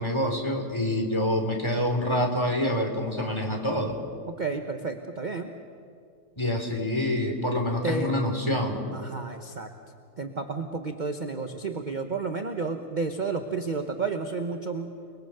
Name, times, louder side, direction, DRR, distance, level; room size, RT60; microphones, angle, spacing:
voice 1, 0.0-4.0 6.4-8.8, left 1 dB, 10° left, 3 dB, 3.0 m, -26 dB
voice 2, 4.3-5.5 7.8-8.1 8.9-9.7 10.2-14.9, right 4 dB, 35° right, 5 dB, 0.8 m, -31 dB
29.5 x 21.5 x 6.8 m, 2.3 s
omnidirectional pair, 2.3 m